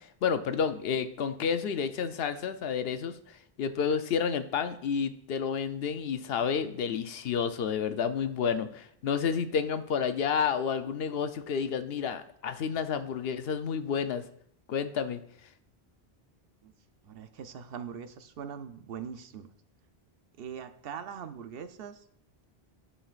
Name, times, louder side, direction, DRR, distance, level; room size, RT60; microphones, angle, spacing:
voice 1, 0.0-3.2 3.6-14.2 14.7-15.2, left 6 dB, 70° left, 10 dB, 0.8 m, -30 dB
voice 2, 17.0-19.5 20.4-22.0, right 7 dB, 65° right, 9 dB, 0.8 m, -41 dB
13.0 x 5.6 x 2.4 m, 0.69 s
omnidirectional pair, 1.1 m